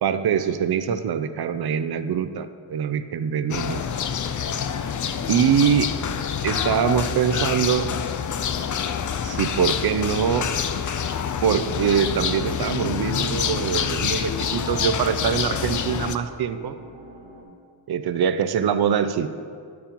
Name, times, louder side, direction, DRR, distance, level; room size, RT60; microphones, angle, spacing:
voice 1, 0.0-3.9 5.3-5.9 6.4-7.9 9.2-10.5 11.4-16.8 17.9-19.3, right 8 dB, 55° right, 11 dB, 0.5 m, -23 dB
sound 1, 3.5-16.2, left 7 dB, 45° left, 0.4 m, -27 dB
sound 2, 11.6-17.4, right 4 dB, 80° right, 2.1 m, -44 dB
8.7 x 4.8 x 5.2 m, 2.1 s
wide cardioid pair, 90°, 45 cm